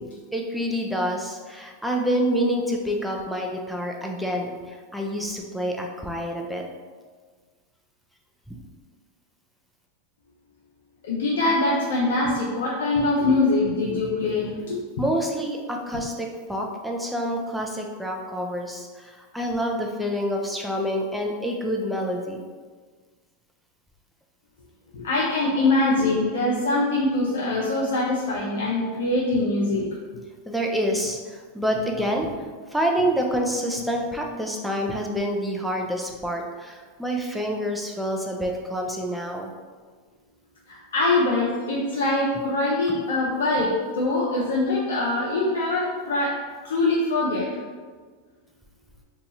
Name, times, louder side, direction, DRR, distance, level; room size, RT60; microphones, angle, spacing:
voice 1, 0.3-6.6 8.5-8.6 15.0-22.4 30.5-39.5, equal, ahead, 0 dB, 0.5 m, -27 dB
voice 2, 11.0-14.8 24.9-29.9 40.7-46.4 46.6-47.6, left 2 dB, 85° left, -6 dB, 0.6 m, -23 dB
2.8 x 2.3 x 4.0 m, 1.5 s
hypercardioid pair, 120°, 0 cm